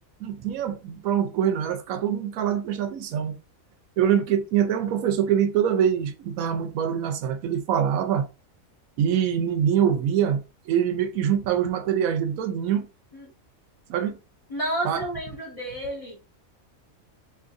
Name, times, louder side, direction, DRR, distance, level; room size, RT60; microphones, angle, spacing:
voice 1, 0.2-3.4 4.0-8.3 9.0-12.9 13.9-14.2 14.8-15.0, right 9 dB, 85° right, 1.0 m, -24 dB
voice 2, 14.5-16.2, right 1 dB, 25° left, 1.4 m, -31 dB
3.7 x 2.8 x 2.5 m
omnidirectional pair, 1.4 m